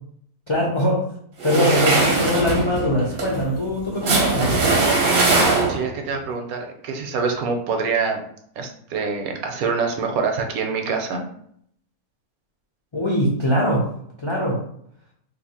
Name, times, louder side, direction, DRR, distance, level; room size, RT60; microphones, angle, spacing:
voice 1, 0.5-1.0 1.4-4.6 12.9-13.9 14.2-14.6, equal, 45° left, -3 dB, 0.4 m, -21 dB
sound 1, 1.4-6.0, right 3 dB, 50° right, 0.7 m, -20 dB
voice 2, 5.7-8.2 8.6-11.2, right 5 dB, 75° right, 4 dB, 1.0 m, -25 dB
2.7 x 2.5 x 4.1 m, 0.67 s
omnidirectional pair, 1.6 m